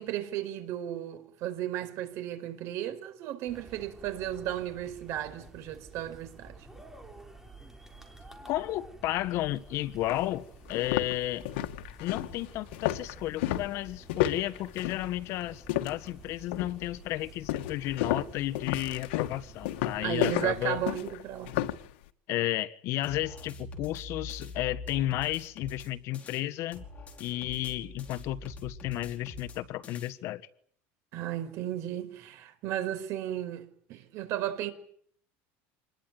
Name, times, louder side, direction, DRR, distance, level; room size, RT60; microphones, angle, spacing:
voice 1, 0.0-6.6 20.0-21.6 31.1-34.7, right 12 dB, 55° right, 4.8 m, -34 dB
sound 1, 3.5-21.0, right 2 dB, 5° right, 3.8 m, -51 dB
voice 2, 8.5-11.5 12.0-20.8 22.3-26.8 27.2-30.4, left 15 dB, 55° left, 1.4 m, -33 dB
sound 2, 9.5-9.6 10.1-10.2 10.7-16.1 16.5-16.9 17.5-21.9, left 14 dB, 90° left, 1.7 m, -32 dB
sound 3, 23.0-26.4 26.7-30.1, left 3 dB, 25° left, 4.9 m, -44 dB
27.0 x 21.0 x 9.4 m
cardioid pair, 150°, 6 cm